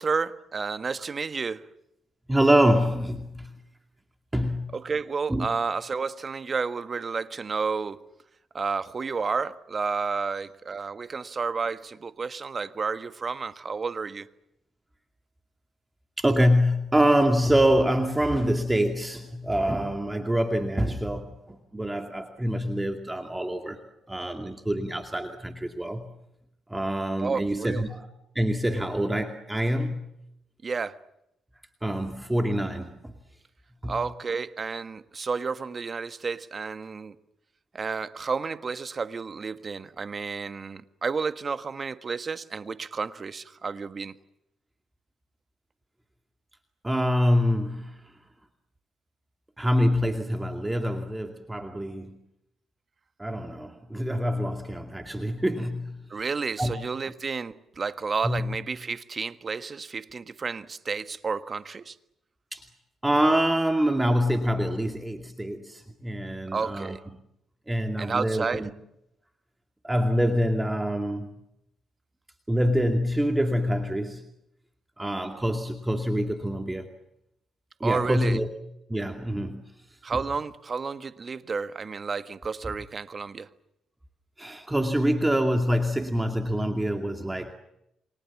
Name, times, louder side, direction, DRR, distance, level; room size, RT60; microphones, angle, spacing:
voice 1, 0.0-1.7 4.7-8.0 8.5-14.3 27.2-27.8 30.6-31.0 33.8-37.1 37.7-44.1 56.1-62.0 66.5-67.0 68.0-68.7 77.8-78.4 80.0-83.5, right 5 dB, 35° right, 1.5 m, -31 dB
voice 2, 2.3-3.5 4.3-4.7 5.3-5.5 16.2-23.8 24.1-26.1 26.7-28.1 28.3-30.0 31.8-33.1 33.8-33.9 46.8-48.0 49.6-52.2 53.2-56.0 56.6-56.7 58.2-58.5 62.5-62.6 63.0-67.0 67.7-68.7 69.8-71.3 72.5-74.2 75.0-76.9 77.8-78.5 78.9-79.6 84.4-87.5, equal, 10° right, 2.4 m, -25 dB
29.0 x 25.0 x 7.3 m
cardioid pair, 90°, 0 cm